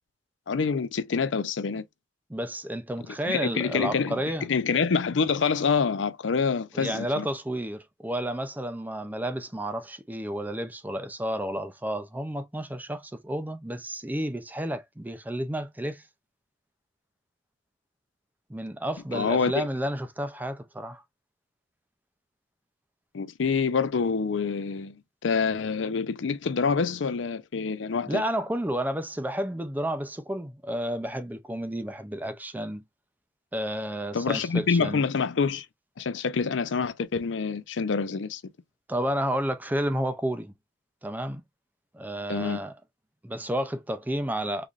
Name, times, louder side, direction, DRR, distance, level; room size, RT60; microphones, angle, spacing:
voice 1, 0.5-1.8 3.3-7.3 19.1-19.7 23.1-28.2 34.1-35.7 36.0-38.4 42.3-42.6, left 5 dB, 80° left, 0.5 m, -26 dB
voice 2, 2.3-4.5 6.7-16.0 18.5-21.0 28.1-32.8 33.5-35.0 38.9-40.5 41.0-41.4 41.9-42.7 43.2-44.7, right 1 dB, 10° right, 0.5 m, -31 dB
3.9 x 3.1 x 2.4 m
head